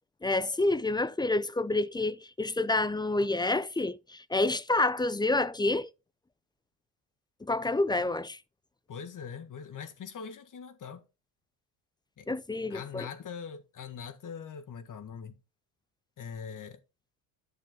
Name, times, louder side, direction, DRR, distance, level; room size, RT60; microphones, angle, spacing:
voice 1, 0.2-5.9 7.4-8.4 12.3-13.1, left 2 dB, 10° left, 0.4 m, -28 dB
voice 2, 8.9-11.0 12.2-12.3 12.7-15.4 16.2-16.8, left 6 dB, 40° left, 1.8 m, -42 dB
10.5 x 6.9 x 3.7 m
supercardioid pair, 80°, 50 cm